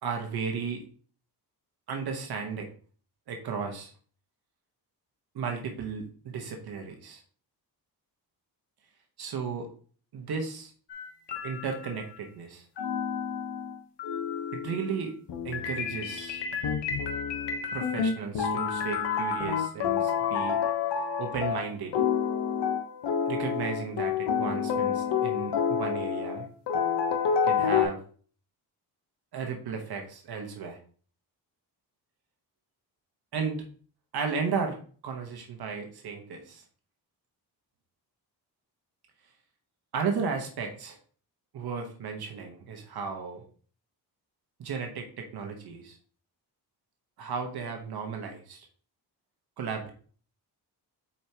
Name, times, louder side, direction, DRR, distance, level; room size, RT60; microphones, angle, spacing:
voice 1, 0.0-0.8 1.9-2.7 3.3-3.9 5.3-7.2 9.2-9.7 10.1-10.7 11.4-12.6 14.5-15.1 15.4-16.4 17.7-20.6 21.2-21.9 23.3-26.5 27.4-28.0 29.3-30.8 33.3-33.6 34.1-34.8 35.0-36.6 39.9-41.0 41.5-43.4 44.6-46.0 47.2-48.7 49.6-49.9, right 5 dB, 65° right, 3 dB, 1.2 m, -34 dB
sound 1, 10.9-12.1 12.8-27.8, left 7 dB, 80° left, 1.1 m, -29 dB
7.2 x 4.7 x 2.9 m, 0.44 s
cardioid pair, 130°, 41 cm